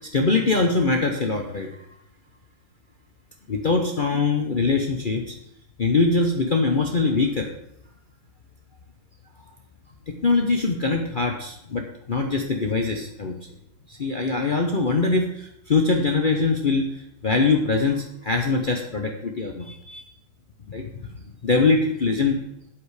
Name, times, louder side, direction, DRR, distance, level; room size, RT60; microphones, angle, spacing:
voice 1, 0.1-1.7 3.5-5.3 5.8-7.5 10.1-13.4 13.9-20.0 20.7-21.1 21.4-22.4, left 3 dB, 90° left, 3 dB, 0.4 m, -23 dB
8.7 x 8.1 x 4.9 m, 0.80 s
omnidirectional pair, 2.2 m